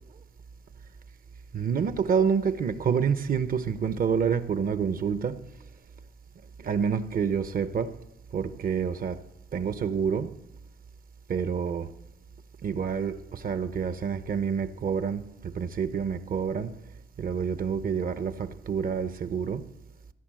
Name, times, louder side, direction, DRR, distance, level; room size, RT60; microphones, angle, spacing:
voice 1, 1.5-5.4 6.6-8.0 8.3-9.2 9.5-10.3 11.3-11.9 12.6-16.8 17.2-19.7, right 6 dB, 45° right, 0.7 m, -28 dB
17.0 x 11.0 x 7.5 m
wide cardioid pair, 175°, 20 cm